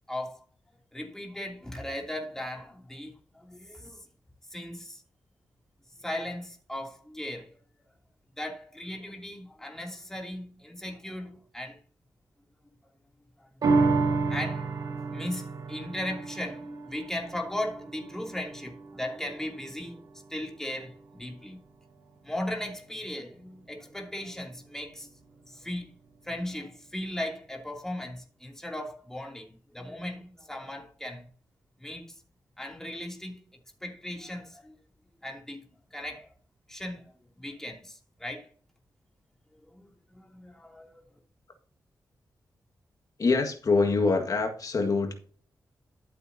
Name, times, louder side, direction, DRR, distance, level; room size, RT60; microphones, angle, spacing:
voice 1, 0.1-0.4 0.9-4.0 4.5-5.0 6.0-7.5 8.4-11.8 14.3-14.7 15.1-20.0 20.3-21.6 22.2-25.2 25.5-25.9 26.2-31.3 31.8-32.1 32.6-33.4 33.8-34.7 35.2-35.6 35.9-36.3 36.7-37.0 37.4-38.5 39.7-41.1, left 1 dB, 5° left, 2.8 m, -37 dB
sound 1, 13.6-20.3 20.7-20.8, right 4 dB, 60° right, 1.5 m, -30 dB
voice 2, 43.2-45.1, left 4 dB, 55° left, 1.7 m, -25 dB
12.5 x 7.9 x 2.8 m
cardioid pair, 85°, 7 cm